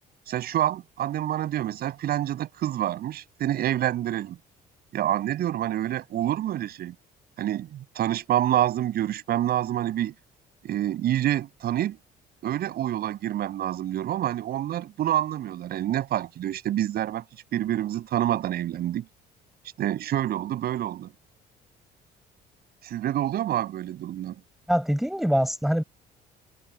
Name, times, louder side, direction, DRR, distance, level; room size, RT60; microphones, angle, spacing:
voice 1, 0.3-4.4 4.9-6.9 7.4-10.1 10.6-12.0 12.4-17.2 17.5-19.0 19.8-21.1 22.8-24.4, right 12 dB, 65° right, 7.9 m, -27 dB
voice 2, 24.7-25.8, equal, ahead, 7.2 m, -24 dB
cardioid pair, 110°, 17 cm